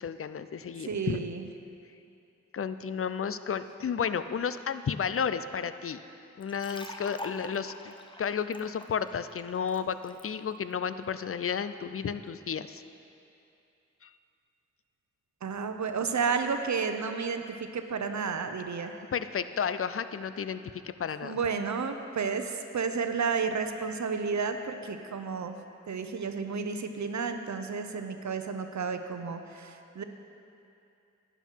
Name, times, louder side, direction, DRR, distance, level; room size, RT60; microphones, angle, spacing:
voice 1, 0.0-1.2 2.5-6.0 6.4-7.9 8.2-12.8 14.0-14.1 19.1-21.4, left 7 dB, 50° left, 12 dB, 0.5 m, -32 dB
voice 2, 0.8-1.5 15.4-19.0 21.2-25.5 25.9-30.0, right 5 dB, 70° right, 7 dB, 0.7 m, -32 dB
sound 1, 6.4-10.2, left 1 dB, 15° left, 0.8 m, -45 dB
11.5 x 9.2 x 4.6 m, 2.7 s
cardioid pair, 40°, 29 cm